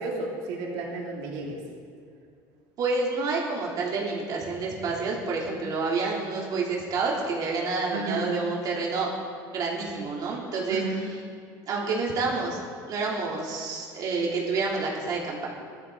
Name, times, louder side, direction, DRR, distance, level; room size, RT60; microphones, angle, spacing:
voice 1, 0.0-1.6 7.9-8.3 10.7-11.0, right 3 dB, 85° right, -2 dB, 3.1 m, -32 dB
voice 2, 2.8-9.1 9.5-10.8 11.7-12.6 12.9-15.5, right 4 dB, 50° right, -3 dB, 3.2 m, -28 dB
16.5 x 12.5 x 4.0 m, 2.2 s
cardioid pair, 120°, 8 cm